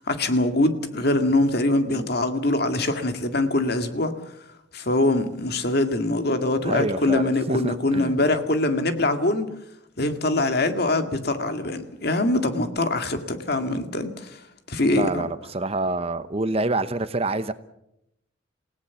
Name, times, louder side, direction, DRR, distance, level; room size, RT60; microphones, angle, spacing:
voice 1, 0.1-4.2 4.7-9.5 10.0-14.4 14.7-15.2, left 2 dB, 55° left, 8 dB, 2.0 m, -23 dB
voice 2, 6.6-8.2 14.8-17.5, right 2 dB, 30° right, 12 dB, 0.9 m, -27 dB
28.0 x 17.0 x 7.1 m, 0.81 s
head